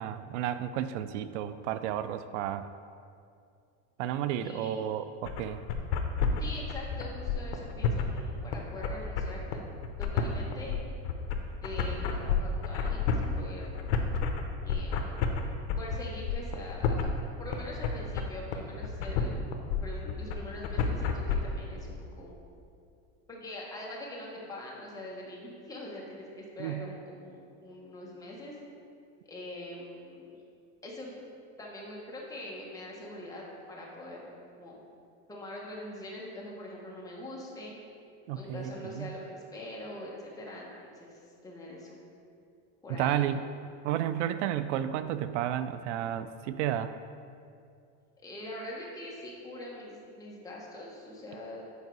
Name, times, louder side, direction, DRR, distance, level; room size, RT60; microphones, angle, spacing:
voice 1, 0.0-2.7 4.0-5.6 26.6-26.9 38.3-39.1 42.9-43.4 43.8-46.9, right 10 dB, 85° right, 12 dB, 0.5 m, -32 dB
voice 2, 4.4-5.0 6.4-9.6 10.0-10.8 11.6-13.8 14.6-15.1 15.8-17.1 17.4-19.3 19.8-22.3 23.3-28.5 29.2-30.4 30.8-31.2 31.6-34.8 35.3-37.8 38.3-42.0 42.8-43.2 48.2-51.6, left 1 dB, 10° left, -4 dB, 1.2 m, -43 dB
sound 1, 5.2-21.4, left 6 dB, 75° left, 0.9 m, -30 dB
8.3 x 4.8 x 4.6 m, 2.4 s
supercardioid pair, 155°, 34 cm